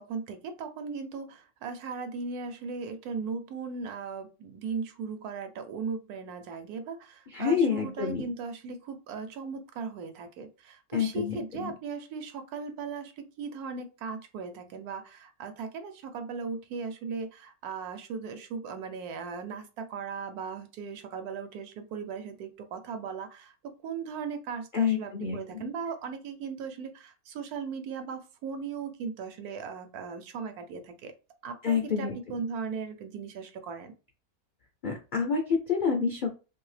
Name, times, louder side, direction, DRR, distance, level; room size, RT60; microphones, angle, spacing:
voice 1, 0.0-31.1 31.4-33.9, right 5 dB, 80° right, 7 dB, 1.1 m, -38 dB
voice 2, 7.3-8.3 10.9-11.7 24.7-25.6 31.6-32.1 34.8-36.3, left 6 dB, 65° left, 1 dB, 0.4 m, -28 dB
2.8 x 2.7 x 3.2 m, 0.31 s
omnidirectional pair, 1.6 m